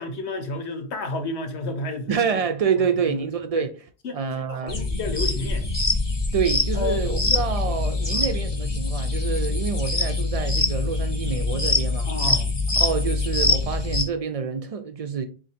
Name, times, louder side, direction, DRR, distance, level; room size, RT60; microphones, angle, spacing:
voice 1, 0.0-2.1 2.8-3.2 3.5-3.6 4.0-4.2 4.5-5.7 6.7-7.2 7.6-7.7 8.1-8.3 12.1-12.5, left 2 dB, 80° left, 1.1 m, -31 dB
voice 2, 2.1-3.7 4.1-4.8 6.3-12.1 12.8-15.2, right 6 dB, 55° right, 0.4 m, -27 dB
sound 1, 4.7-14.0, left 3 dB, 30° left, 0.7 m, -24 dB
3.7 x 2.7 x 4.2 m
omnidirectional pair, 1.1 m